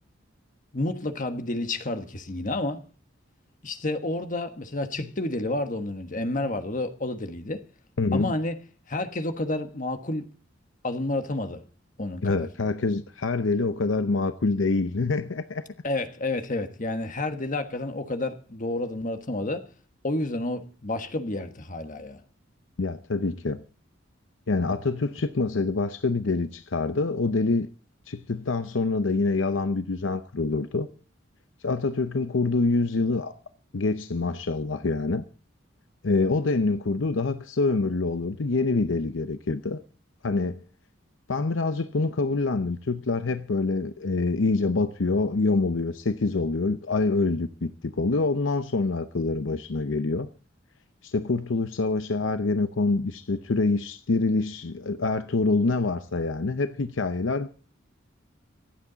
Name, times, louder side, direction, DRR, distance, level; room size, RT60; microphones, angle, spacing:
voice 1, 0.7-2.8 3.6-7.6 8.1-8.6 8.9-10.3 10.8-11.6 12.0-12.5 15.8-19.7 20.0-22.2, left 2 dB, 40° left, 1.4 m, -30 dB
voice 2, 8.0-8.4 12.2-15.7 22.8-23.6 24.5-27.7 28.1-30.9 31.6-33.3 33.7-35.2 36.0-39.8 40.2-40.6 41.3-50.3 51.0-57.5, left 3 dB, 75° left, 0.7 m, -26 dB
25.5 x 8.7 x 4.0 m
head